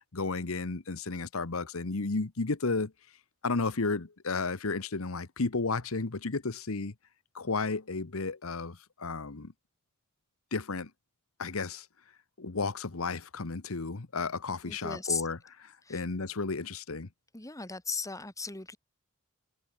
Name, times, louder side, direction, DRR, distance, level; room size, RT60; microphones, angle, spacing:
voice 1, 0.1-2.9 3.4-6.9 7.3-9.5 10.5-10.9 11.4-11.9 12.4-15.4 15.6-17.1, left 3 dB, 75° left, 1.2 m, -33 dB
voice 2, 14.6-15.2 15.8-16.0 17.3-18.8, left 4 dB, 15° left, 2.3 m, -36 dB
head